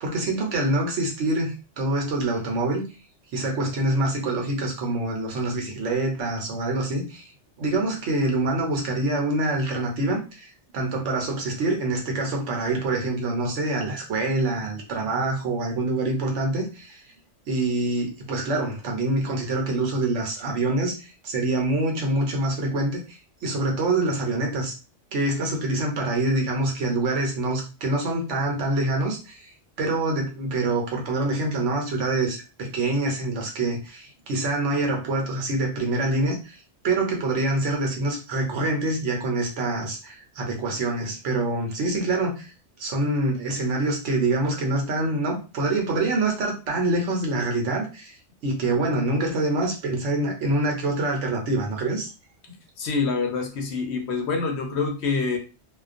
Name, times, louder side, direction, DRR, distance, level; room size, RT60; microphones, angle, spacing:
voice 1, 0.0-2.9 3.3-7.3 7.6-17.0 17.5-24.7 25.1-29.5 29.8-36.6 36.8-42.5 42.8-48.2 48.4-52.1, right 2 dB, 85° right, 2 dB, 1.1 m, -25 dB
voice 2, 52.8-55.4, left 4 dB, 70° left, 3 dB, 0.9 m, -26 dB
2.4 x 2.2 x 2.4 m, 0.32 s
omnidirectional pair, 1.2 m